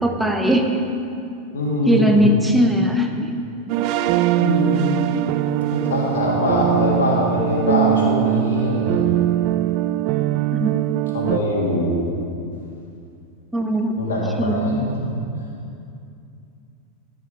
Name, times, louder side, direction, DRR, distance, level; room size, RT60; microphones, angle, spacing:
voice 1, 0.0-0.8 1.9-3.3 10.5-10.7 13.5-14.0 14.4-14.8, equal, 5° right, 3 dB, 0.9 m, -19 dB
voice 2, 1.5-2.3 4.4-5.0 5.7-9.0 11.1-12.1 14.0-15.1, left 1 dB, 85° left, -4 dB, 3.1 m, -22 dB
sound 1, 3.7-11.4, right 14 dB, 50° right, 0.4 m, -21 dB
15.5 x 6.6 x 5.5 m, 2.5 s
hypercardioid pair, 110°, 0 cm